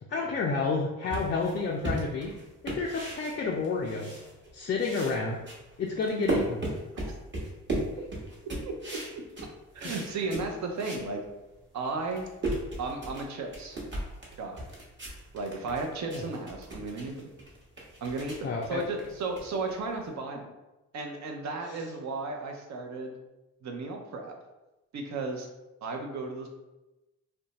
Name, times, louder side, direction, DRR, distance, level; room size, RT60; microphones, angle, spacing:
voice 1, 0.1-2.3 2.6-4.2 4.5-5.4 5.8-6.6 9.8-9.9 16.1-16.2 18.4-18.8 21.7-21.8, left 4 dB, 30° left, -2 dB, 0.4 m, -30 dB
sound 1, 1.1-4.5 4.8-11.1 11.5-11.6 12.0-20.1, right 1 dB, 30° right, 1.0 m, -36 dB
voice 2, 8.7-9.0 9.7-11.2 11.7-12.3 12.8-13.8 14.4-14.7 15.3-17.3 18.0-20.5 20.9-23.2 23.6-24.3 24.9-25.5 25.8-26.5, right 3 dB, 50° right, 3 dB, 0.6 m, -34 dB
2.5 x 2.2 x 2.9 m, 1.0 s
supercardioid pair, 65°, 36 cm